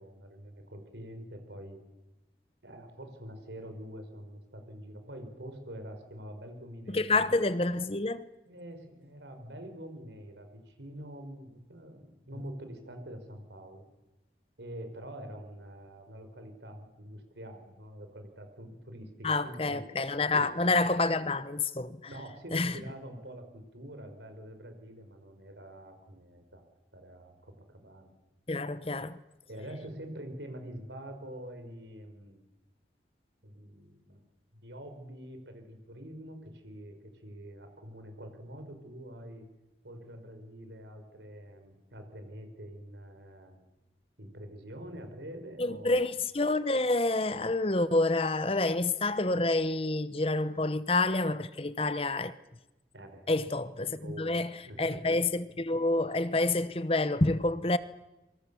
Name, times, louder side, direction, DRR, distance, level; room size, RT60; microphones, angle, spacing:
voice 1, 0.0-1.8 2.6-7.3 8.5-13.8 14.6-19.9 20.3-20.7 22.0-26.6 26.9-28.1 29.5-32.4 33.4-34.2 34.6-39.5 39.8-43.6 44.2-46.0 52.9-53.3 53.8-55.0, equal, 80° right, 5.3 m, -45 dB
voice 2, 6.9-8.2 19.2-22.0 22.5-22.7 28.5-29.2 45.6-52.3 53.3-54.5 54.8-57.8, left 2 dB, 30° left, 0.9 m, -28 dB
26.5 x 25.0 x 7.1 m
head